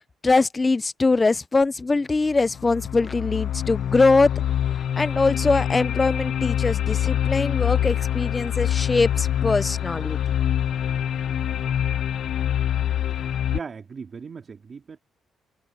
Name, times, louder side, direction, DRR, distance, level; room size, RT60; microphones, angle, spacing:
voice 1, 0.2-4.3 5.0-10.2, left 3 dB, 25° left, 0.5 m, -22 dB
sound 1, 2.2-13.6, left 10 dB, 65° left, 0.8 m, -25 dB
voice 2, 13.5-15.0, right 5 dB, 40° right, 2.9 m, -37 dB
cardioid pair, 90°, 0 cm